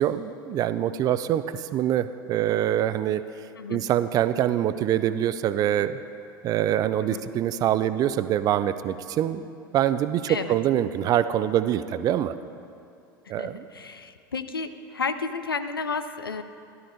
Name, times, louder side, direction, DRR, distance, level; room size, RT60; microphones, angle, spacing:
voice 1, 0.0-3.2 3.7-6.0 6.4-9.5 9.7-12.3 13.3-13.7, right 11 dB, 35° right, 13 dB, 0.3 m, -24 dB
voice 2, 13.4-16.4, left 4 dB, 85° left, 10 dB, 0.5 m, -32 dB
13.5 x 12.0 x 2.6 m, 2.5 s
figure-of-eight pair, 80°, 12 cm